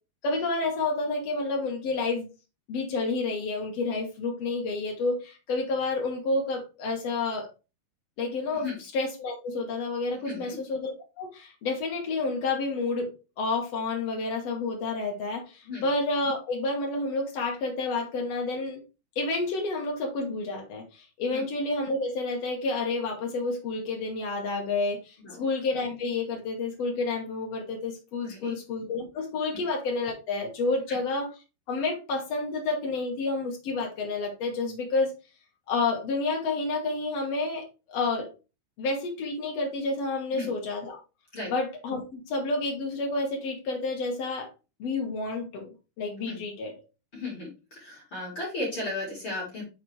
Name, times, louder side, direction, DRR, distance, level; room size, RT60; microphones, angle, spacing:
voice 1, 0.2-2.3 2.7-7.5 8.2-18.8 19.1-31.3 31.7-35.1 35.7-38.3 38.8-41.0 41.5-44.5 44.8-45.7 46.0-46.7, left 3 dB, 80° left, 0 dB, 1.4 m, -30 dB
voice 2, 10.2-10.6 15.6-15.8 21.3-21.4 25.2-25.4 28.2-28.5 30.9-31.0 40.3-40.5 41.3-41.5 46.2-46.4 47.1-47.5 47.8-49.6, left 2 dB, 35° left, -5 dB, 2.8 m, -35 dB
6.9 x 4.4 x 3.2 m, 0.30 s
omnidirectional pair, 5.1 m